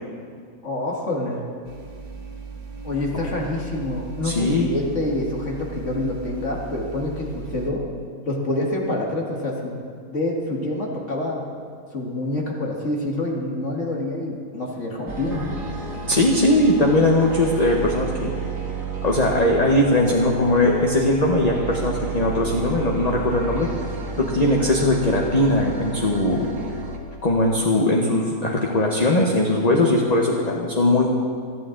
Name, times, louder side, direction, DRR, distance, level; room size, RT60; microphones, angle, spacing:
voice 1, 0.6-1.4 2.8-7.8 8.3-9.8 10.1-11.5 11.9-15.5, left 2 dB, 55° left, -1 dB, 1.9 m, -27 dB
sound 1, 1.6-7.7, right 4 dB, 80° right, 1.7 m, -37 dB
voice 2, 4.2-4.7 16.1-18.3 19.0-23.7 24.2-26.5 27.2-31.1, left 1 dB, 30° left, -1 dB, 1.1 m, -20 dB
sound 2, 15.1-27.0, right 4 dB, 65° right, 1.8 m, -31 dB
26.5 x 9.3 x 3.8 m, 2.1 s
omnidirectional pair, 1.6 m